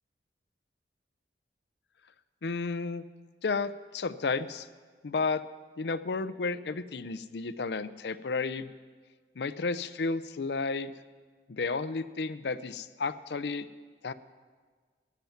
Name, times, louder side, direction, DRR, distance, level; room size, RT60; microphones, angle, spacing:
voice 1, 2.4-3.0 3.4-4.7 5.0-5.4 5.8-8.7 9.4-10.9 11.5-13.7 14.0-14.1, left 4 dB, 75° left, 14 dB, 0.5 m, -32 dB
15.0 x 10.5 x 5.8 m, 1.5 s
head